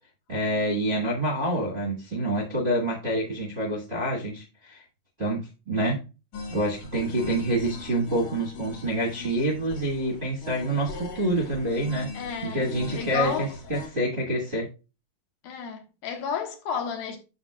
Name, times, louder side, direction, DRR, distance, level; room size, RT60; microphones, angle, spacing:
voice 1, 0.3-4.8 5.2-6.0 6.5-12.1 12.4-14.7, right 1 dB, 45° right, 0.8 m, -27 dB
sound 1, 6.3-13.9, left 2 dB, 60° left, 3.6 m, -40 dB
voice 2, 12.1-12.7 12.9-13.5 15.4-17.2, left 7 dB, 80° left, 3.1 m, -31 dB
9.5 x 6.6 x 2.3 m
omnidirectional pair, 4.3 m